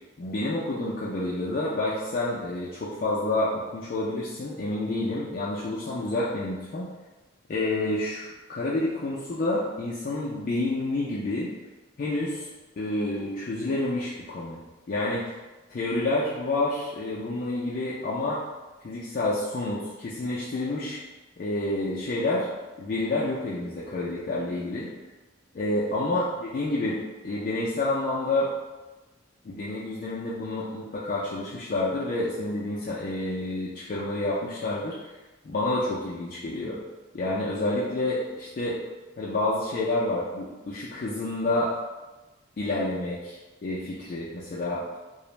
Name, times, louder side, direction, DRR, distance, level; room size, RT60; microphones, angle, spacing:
voice 1, 0.2-6.9 7.5-11.5 12.0-12.5 12.8-14.6 14.9-15.3 15.7-18.4 18.8-21.0 21.4-22.5 22.8-24.9 25.5-28.5 29.4-35.0 35.4-36.8 37.1-38.8 39.2-41.7 42.6-44.8, left 2 dB, 45° left, -7 dB, 0.3 m, -29 dB
2.4 x 2.0 x 3.0 m, 1.1 s
head